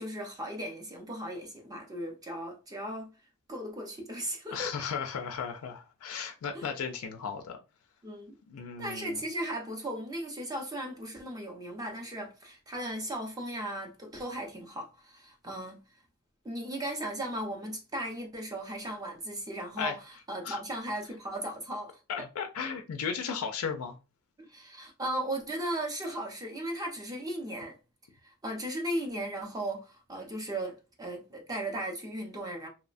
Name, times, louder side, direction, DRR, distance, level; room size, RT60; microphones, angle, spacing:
voice 1, 0.0-3.1 3.5-4.7 6.5-6.7 8.0-8.3 8.8-15.8 16.4-22.0 24.4-27.7 28.2-32.7, right 1 dB, 15° right, 0.6 m, -36 dB
voice 2, 4.5-7.6 8.5-9.2 19.8-19.9 20.4-20.6 22.1-24.0, left 6 dB, 75° left, 0.4 m, -35 dB
2.9 x 2.0 x 2.5 m
head